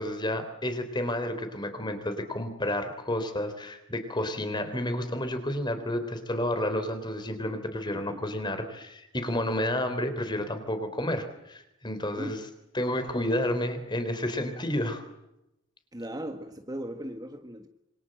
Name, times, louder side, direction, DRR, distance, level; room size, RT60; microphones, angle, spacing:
voice 1, 0.0-12.4 12.7-15.0, left 1 dB, 20° left, 9 dB, 3.6 m, -30 dB
voice 2, 7.9-8.3 12.1-12.4 15.9-17.7, right 1 dB, 20° right, 6 dB, 1.6 m, -38 dB
27.0 x 24.5 x 7.8 m, 0.89 s
head